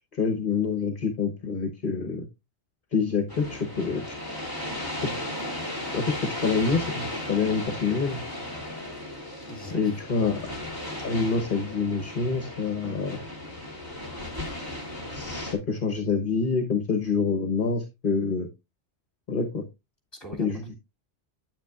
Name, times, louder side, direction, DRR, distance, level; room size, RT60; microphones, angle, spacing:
voice 1, 0.1-2.3 2.9-4.0 5.0-5.1 5.9-8.2 9.7-10.4 11.0-13.2 15.1-18.5 19.3-19.6 20.4-20.6, left 5 dB, 50° left, 1.1 m, -26 dB
sound 1, 3.3-15.6, left 1 dB, 20° right, 2.6 m, -35 dB
voice 2, 9.5-10.4 20.1-20.8, right 1 dB, 20° left, 2.7 m, -42 dB
9.0 x 9.0 x 2.3 m
omnidirectional pair, 1.1 m